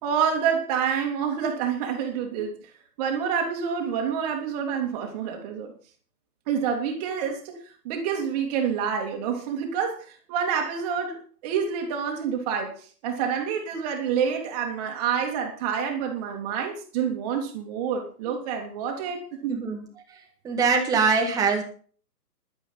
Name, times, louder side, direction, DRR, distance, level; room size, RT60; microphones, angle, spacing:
voice 1, 0.0-2.6 3.0-5.7 6.5-7.6 7.8-19.6, right 7 dB, 25° right, 2.6 m, -28 dB
voice 2, 19.5-19.8 20.4-21.6, right 5 dB, 5° right, 1.6 m, -22 dB
11.5 x 11.0 x 5.6 m
hypercardioid pair, 150°, 48 cm